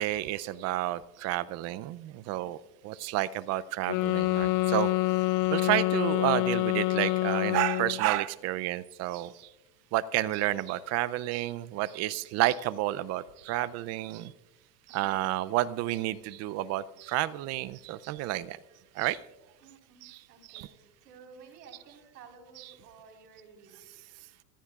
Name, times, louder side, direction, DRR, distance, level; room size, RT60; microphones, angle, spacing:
voice 1, 0.0-2.6 2.8-4.9 5.5-9.5 9.9-14.3 14.9-18.6 18.9-19.2 20.0-20.2 20.5-20.7 22.6-22.7, right 15 dB, 35° right, 0.5 m, -30 dB
voice 2, 2.0-2.6 16.9-17.1 17.8-18.0 18.6-19.0 19.6-24.1, right 5 dB, 90° right, 4.4 m, -55 dB
sound 1, 3.9-8.1, left 18 dB, 55° left, 0.5 m, -27 dB
26.0 x 15.0 x 2.4 m
supercardioid pair, 120°, 47 cm